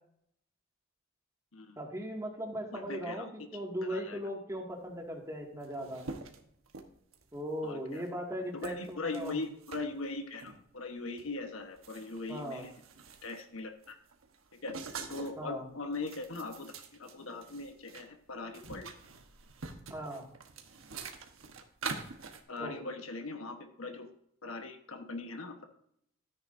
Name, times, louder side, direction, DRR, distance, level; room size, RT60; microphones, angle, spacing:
voice 1, 1.8-6.0 7.3-9.4 12.3-12.7 15.4-15.6 19.9-20.3 22.6-22.7, equal, 15° right, 0 dB, 2.1 m, -38 dB
voice 2, 2.7-3.2 3.9-4.2 7.6-8.0 8.5-12.7 13.2-14.0 14.6-14.7 15.1-16.7 17.0-18.9 22.5-24.1 24.4-25.6, left 3 dB, 85° left, 5 dB, 1.2 m, -40 dB
sound 1, 5.2-5.3 5.4-7.4 7.9-8.1 8.6-9.8 10.4-10.6 11.2-11.3 11.6-13.5 13.8-15.4 15.9-18.1 18.3-22.4, right 4 dB, 80° right, 1.2 m, -45 dB
13.5 x 9.6 x 2.6 m, 0.70 s
head